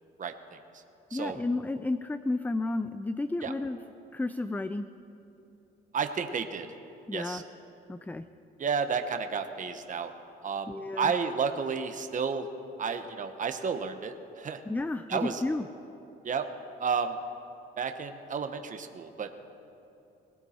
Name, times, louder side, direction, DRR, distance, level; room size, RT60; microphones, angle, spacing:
voice 1, 0.2-0.6 1.1-1.4 3.4-3.5 5.9-6.7 7.1-7.4 8.6-10.1 10.4-12.5 12.8-14.6 15.1-15.4 16.2-16.5 16.8-17.2 17.8-19.3, right 6 dB, 40° right, 7 dB, 1.0 m, -31 dB
voice 2, 1.1-3.8 4.1-4.9 7.1-7.4 7.9-8.2 10.7-11.1 14.7-15.7, left 2 dB, 10° left, 11 dB, 0.4 m, -32 dB
19.0 x 17.0 x 4.3 m, 2.7 s
cardioid pair, 90°, 20 cm